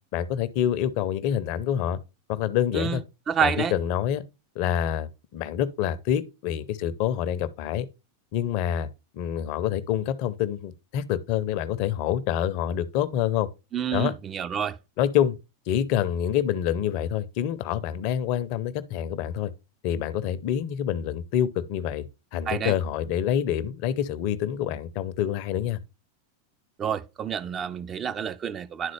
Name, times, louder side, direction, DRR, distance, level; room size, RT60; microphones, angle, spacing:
voice 1, 0.1-2.0 2.3-3.0 3.4-4.2 4.6-7.9 8.3-8.9 9.1-13.5 13.9-14.1 15.0-15.4 15.7-19.5 19.8-22.1 22.3-25.8, left 10 dB, 45° left, 0.6 m, -27 dB
voice 2, 3.3-3.8 13.7-14.8 22.5-22.7 26.8-28.9, right 8 dB, 25° right, 0.4 m, -28 dB
10.5 x 3.9 x 3.2 m
figure-of-eight pair, 90°, 0 cm